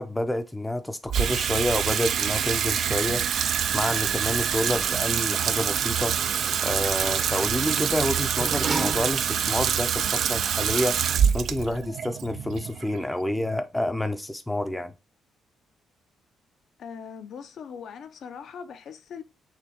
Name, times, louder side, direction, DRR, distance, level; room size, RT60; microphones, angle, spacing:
voice 1, 0.0-3.2 3.7-6.1 6.6-11.0 11.3-14.9, left 1 dB, 10° left, 0.5 m, -28 dB
Water tap faucet / Sink (filling or washing), 1.1-13.5, right 8 dB, 65° right, 0.3 m, -26 dB
Sliding door, 5.6-9.6 10.1-10.2, right 3 dB, 35° right, 0.8 m, -36 dB
voice 2, 16.8-19.2, left 7 dB, 65° left, 0.7 m, -40 dB
5.8 x 3.1 x 2.9 m
cardioid pair, 90°, 0 cm